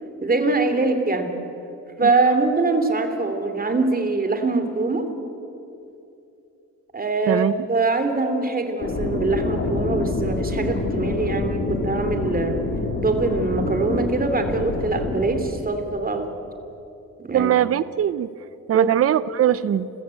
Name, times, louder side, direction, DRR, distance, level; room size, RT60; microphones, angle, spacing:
voice 1, 0.2-1.3 2.0-5.0 6.9-12.5 13.0-16.3 17.2-17.5 18.7-18.9, right 3 dB, 30° right, 7 dB, 3.0 m, -23 dB
sound 1, 8.8-15.4, left 2 dB, 45° left, 4.5 m, -26 dB
voice 2, 17.3-19.9, right 10 dB, 50° right, 17 dB, 0.7 m, -21 dB
29.5 x 14.5 x 8.5 m, 2.8 s
cardioid pair, 90°, 30 cm